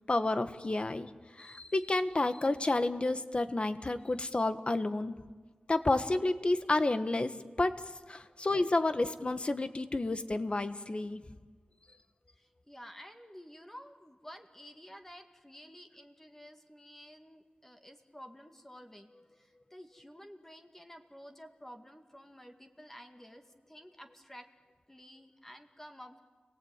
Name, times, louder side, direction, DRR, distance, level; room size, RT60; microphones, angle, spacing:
voice 1, 0.1-5.2 5.7-7.8 8.1-11.2, left 2 dB, 40° left, 10 dB, 1.4 m, -30 dB
voice 2, 12.4-19.1 19.4-24.5 24.9-26.2, equal, 10° left, 5 dB, 2.1 m, -52 dB
30.0 x 20.0 x 9.0 m, 1.4 s
wide cardioid pair, 85°, 3 cm